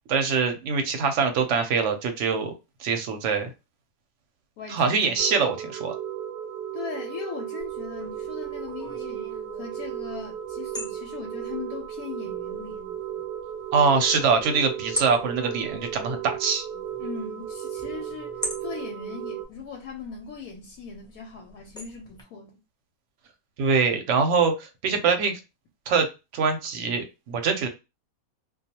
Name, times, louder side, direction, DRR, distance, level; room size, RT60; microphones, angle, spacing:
voice 1, 0.1-2.5 2.8-3.5 4.7-5.9 13.7-16.6 23.6-25.4 25.9-26.1 26.3-27.7, right 5 dB, 65° right, 0.8 m, -23 dB
voice 2, 4.6-5.2 6.7-12.9 17.0-22.6, left 6 dB, 85° left, 1.1 m, -39 dB
sound 1, 5.2-19.4, right 10 dB, 85° right, 0.4 m, -35 dB
sound 2, 7.6-22.2, equal, 5° left, 0.4 m, -42 dB
2.3 x 2.3 x 2.8 m
omnidirectional pair, 1.5 m